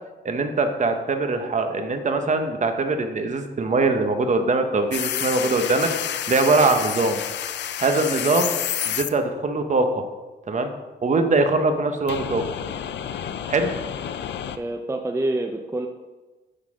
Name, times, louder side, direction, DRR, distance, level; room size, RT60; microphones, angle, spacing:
voice 1, 0.2-7.2 7.8-8.5 8.9-10.0 10.5-10.7 11.0-12.4 13.5-13.7, right 3 dB, 40° right, 6 dB, 0.9 m, -22 dB
sound 1, 4.9-9.1 12.1-14.6, left 9 dB, 75° left, 0.5 m, -29 dB
voice 2, 14.6-15.9, right 2 dB, 15° right, 3 dB, 0.5 m, -27 dB
9.8 x 4.1 x 5.0 m, 1.2 s
cardioid pair, 100°, 18 cm